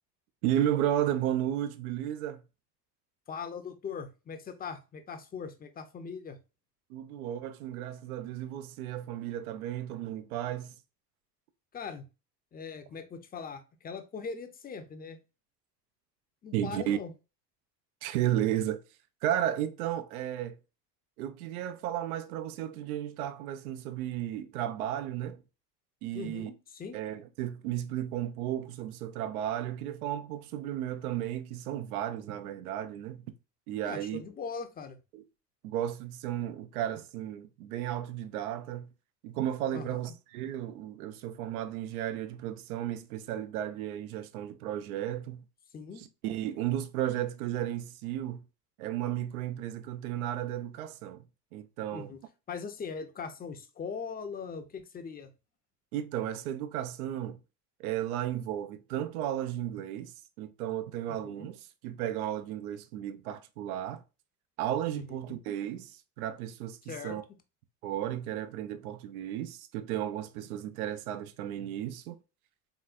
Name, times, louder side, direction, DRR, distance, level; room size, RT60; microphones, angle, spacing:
voice 1, 0.4-2.4 6.9-10.8 16.5-17.0 18.0-18.8 19.2-20.6 21.2-25.4 26.0-26.5 26.9-33.2 33.7-34.2 35.1-35.2 35.6-38.9 39.2-45.4 46.0-48.4 48.8-51.2 51.5-52.1 55.9-57.4 57.8-64.0 64.6-67.2 67.8-72.2, right 11 dB, 60° right, 0.7 m, -34 dB
voice 2, 3.3-6.4 11.7-12.1 12.5-15.2 16.4-17.1 26.1-27.0 33.8-35.0 39.7-40.0 45.7-46.1 51.9-52.2 52.5-55.3 61.1-61.5 64.9-65.4 66.9-67.2, left 5 dB, 20° left, 0.7 m, -40 dB
4.0 x 3.9 x 2.4 m
figure-of-eight pair, 70°, 49 cm